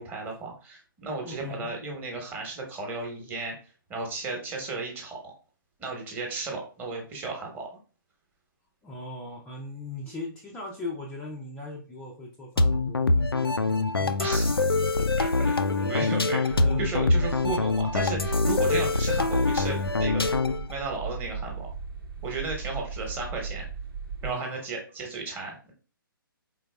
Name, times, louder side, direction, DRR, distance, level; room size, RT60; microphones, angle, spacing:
voice 1, 0.0-5.3 5.8-7.7 14.2-14.6 15.2-15.6 15.9-20.3 20.7-21.7 22.2-23.6 24.2-25.7, right 3 dB, 15° right, 0 dB, 1.1 m, -34 dB
voice 2, 1.2-1.8 8.8-14.1 15.0-15.1 15.4-16.2 16.5-16.8 24.2-24.6, left 2 dB, 10° left, -2 dB, 0.4 m, -39 dB
sound 1, 12.6-20.7, left 3 dB, 90° left, 0.4 m, -24 dB
sound 2, 16.5-24.3, right 5 dB, 80° right, 1.1 m, -37 dB
4.4 x 3.8 x 2.2 m, 0.37 s
figure-of-eight pair, 130°, 12 cm